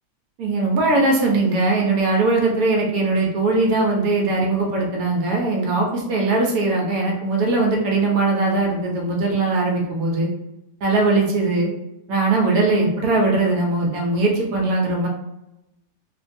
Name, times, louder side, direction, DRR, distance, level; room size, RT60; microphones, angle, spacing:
voice 1, 0.4-10.3 10.8-11.7 12.1-15.1, right 2 dB, 70° right, -1 dB, 1.0 m, -20 dB
3.1 x 2.2 x 2.5 m, 0.90 s
omnidirectional pair, 1.8 m